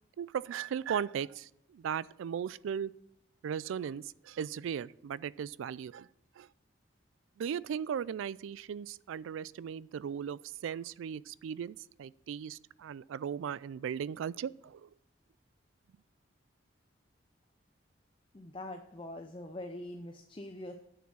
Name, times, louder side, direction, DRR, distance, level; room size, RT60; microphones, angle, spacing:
voice 1, 0.2-2.9 3.4-6.1 6.4-6.5 7.4-14.9, right 8 dB, 90° right, 21 dB, 0.3 m, -37 dB
voice 2, 18.3-20.7, left 1 dB, 25° left, 5 dB, 0.6 m, -43 dB
8.7 x 6.8 x 6.2 m, 0.79 s
head